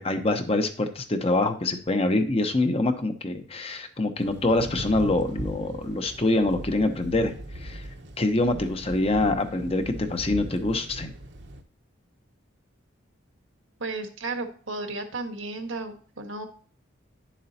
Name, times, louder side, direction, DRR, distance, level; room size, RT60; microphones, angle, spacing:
voice 1, 0.0-7.3 7.6-7.9 8.2-11.1, left 2 dB, 30° left, 8 dB, 0.9 m, -25 dB
Thunder / Rain, 4.2-11.6, right 1 dB, 55° right, 0.9 m, -39 dB
voice 2, 13.8-16.5, right 3 dB, 80° right, 6 dB, 1.4 m, -33 dB
10.0 x 7.4 x 2.8 m, 0.43 s
head